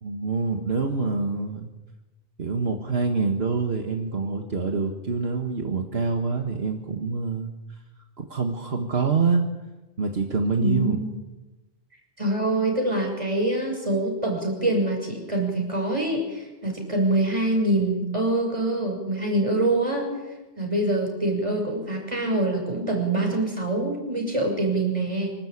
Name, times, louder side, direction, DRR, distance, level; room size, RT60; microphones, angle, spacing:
voice 1, 0.0-1.7 2.4-7.5 8.2-9.5 10.0-11.0, right 4 dB, 75° right, 3 dB, 1.9 m, -26 dB
voice 2, 10.6-11.2 12.2-20.1 20.6-25.4, right 2 dB, 30° right, 1 dB, 6.5 m, -25 dB
26.0 x 13.0 x 8.6 m, 1.1 s
omnidirectional pair, 1.1 m